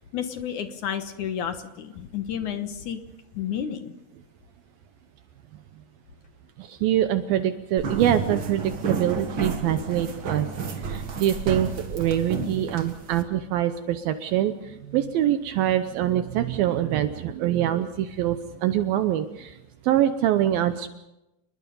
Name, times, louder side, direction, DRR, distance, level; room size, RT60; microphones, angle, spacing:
voice 1, 0.1-3.0 3.3-3.9, left 9 dB, 65° left, 8 dB, 2.3 m, -31 dB
voice 2, 6.6-10.5 10.8-19.6 19.8-20.9, right 11 dB, 75° right, 9 dB, 2.6 m, -24 dB
sound 1, 7.8-13.2, right 5 dB, 45° right, 1.8 m, -31 dB
29.0 x 21.0 x 5.5 m, 0.92 s
omnidirectional pair, 4.5 m